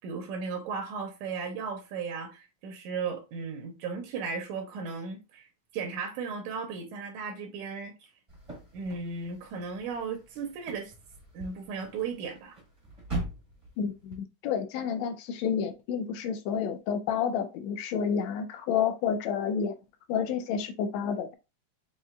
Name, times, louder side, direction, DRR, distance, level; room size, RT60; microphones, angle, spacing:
voice 1, 0.0-5.5 5.7-7.9 8.7-10.9 11.3-12.6, right 5 dB, 90° right, 2.3 m, -35 dB
sound 1, 8.3-14.2, right 2 dB, 30° right, 0.6 m, -41 dB
voice 2, 13.8-19.7 20.1-21.3, left 7 dB, 75° left, 1.8 m, -30 dB
6.2 x 3.0 x 2.4 m
omnidirectional pair, 3.3 m